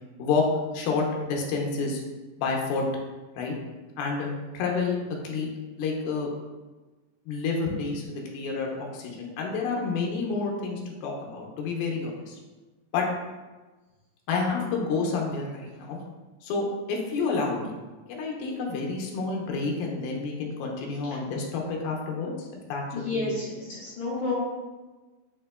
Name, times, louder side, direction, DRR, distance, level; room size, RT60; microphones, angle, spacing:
voice 1, 0.7-2.0 2.4-2.8 3.4-3.5 4.0-5.0 5.2-5.5 5.8-6.3 7.3-12.4 12.9-13.1 14.3-16.0 16.4-17.8 18.1-22.8 23.1-23.3, left 4 dB, 90° left, 0 dB, 2.5 m, -29 dB
voice 2, 22.9-23.4 23.8-24.3, left 3 dB, 75° left, -8 dB, 1.8 m, -29 dB
7.0 x 2.8 x 2.2 m, 1.2 s
omnidirectional pair, 4.2 m